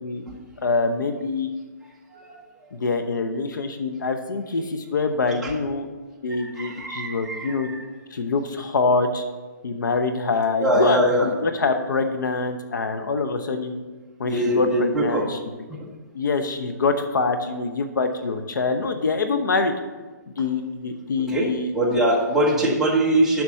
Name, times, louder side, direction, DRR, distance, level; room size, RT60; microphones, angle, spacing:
voice 1, 0.6-1.5 2.7-5.9 6.2-7.7 8.1-9.2 9.6-13.7 14.2-15.4 16.1-19.7 20.4-21.7 22.7-22.8, left 4 dB, 85° left, 7 dB, 0.9 m, -25 dB
voice 2, 6.5-7.8 10.6-11.3 14.3-15.2 15.8-15.9 21.3-21.5 21.7-23.4, right 1 dB, 5° right, -4 dB, 1.1 m, -22 dB
7.1 x 6.1 x 6.3 m, 1.3 s
hypercardioid pair, 160°, 10 cm